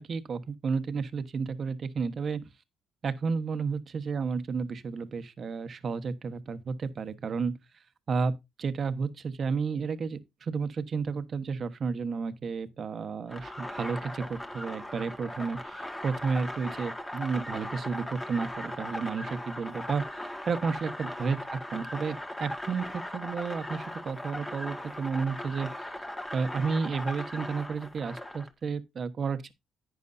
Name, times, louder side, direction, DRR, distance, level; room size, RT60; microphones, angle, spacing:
voice 1, 0.0-2.4 3.0-7.5 8.1-8.3 8.6-25.7 26.3-29.5, right 5 dB, 50° right, 1.2 m, -32 dB
sound 1, 13.3-28.5, left 1 dB, 15° left, 1.7 m, -39 dB
11.0 x 9.1 x 2.7 m
cardioid pair, 90°, 0 cm